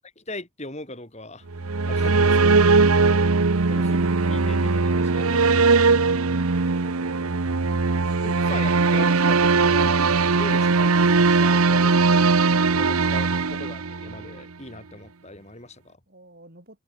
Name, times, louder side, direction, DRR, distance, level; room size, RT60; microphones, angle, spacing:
voice 1, 0.2-1.5 1.9-2.7 3.7-5.7 8.2-10.0 10.3-12.2 12.7-16.0, left 2 dB, 30° left, 7.9 m, -39 dB
sound 1, 1.5-14.3, right 4 dB, 90° right, 1.0 m, -20 dB
voice 2, 7.7-8.8 16.1-16.8, right 1 dB, 45° right, 6.4 m, -48 dB
head